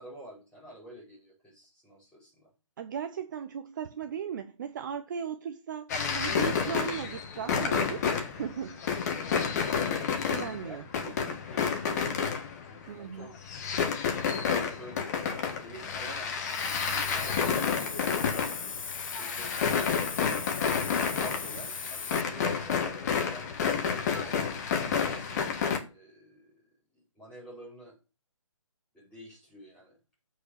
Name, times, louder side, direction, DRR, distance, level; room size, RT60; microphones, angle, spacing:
voice 1, 0.0-2.5 10.6-11.2 11.5-12.3 12.6-13.4 14.1-18.8 19.2-20.1 21.1-24.5 24.9-26.6 26.9-27.9 28.9-30.0, equal, 5° left, 5.3 m, -49 dB
voice 2, 2.8-8.8 10.3-10.8 11.3-11.4 12.9-13.3, right 8 dB, 35° right, 0.7 m, -37 dB
sound 1, 5.9-12.8 13.2-25.8, left 6 dB, 30° left, 1.6 m, -30 dB
Hiss, 16.5-22.2, left 5 dB, 75° left, 0.7 m, -39 dB
8.3 x 4.9 x 6.6 m
figure-of-eight pair, 155°, 17 cm